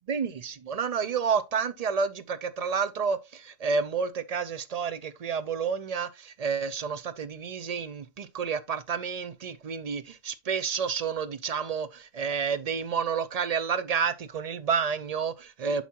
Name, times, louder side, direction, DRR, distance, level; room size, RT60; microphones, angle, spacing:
voice 1, 0.1-15.8, right 6 dB, 50° right, 0.5 m, -30 dB
8.1 x 6.0 x 2.9 m
omnidirectional pair, 1.2 m